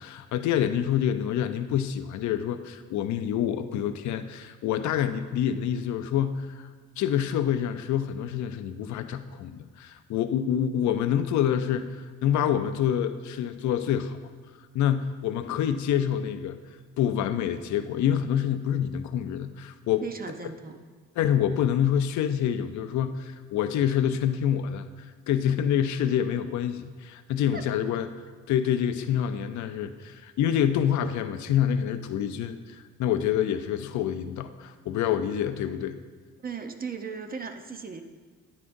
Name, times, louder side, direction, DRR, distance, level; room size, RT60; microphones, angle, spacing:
voice 1, 0.0-6.7 7.0-14.2 14.7-16.6 17.0-20.0 21.2-28.1 28.5-36.0, left 9 dB, 70° left, 9 dB, 0.5 m, -27 dB
voice 2, 20.0-20.8 27.5-27.6 36.4-38.0, right 5 dB, 30° right, 7 dB, 0.7 m, -37 dB
9.8 x 9.6 x 2.6 m, 1.5 s
cardioid pair, 90°, 30 cm